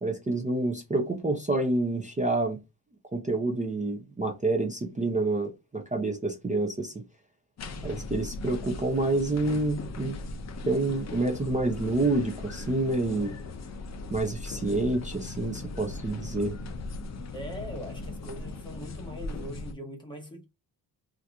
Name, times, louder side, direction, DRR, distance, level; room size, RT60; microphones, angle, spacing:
voice 1, 0.0-2.6 3.1-7.0 7.8-10.1 10.7-13.4 14.1-16.6, right 2 dB, 20° right, 0.4 m, -28 dB
sound 1, 7.6-19.7, left 3 dB, 40° left, 0.4 m, -39 dB
voice 2, 17.3-20.4, equal, 10° left, 1.0 m, -41 dB
2.8 x 2.5 x 3.3 m
wide cardioid pair, 165°, 43 cm